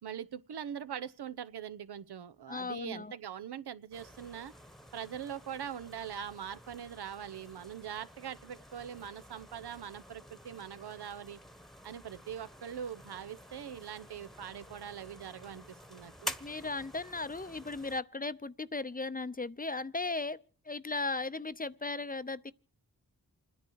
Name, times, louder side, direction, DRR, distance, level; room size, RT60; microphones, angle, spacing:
voice 1, 0.0-4.5 4.9-11.4 11.8-16.3, right 8 dB, 75° right, 0.9 m, -42 dB
voice 2, 2.5-3.1 16.4-20.4 20.7-22.5, left 3 dB, 20° left, 0.7 m, -36 dB
sound 1, 3.9-18.0, left 1 dB, ahead, 1.2 m, -49 dB
28.0 x 10.0 x 4.7 m
cardioid pair, 45°, 40 cm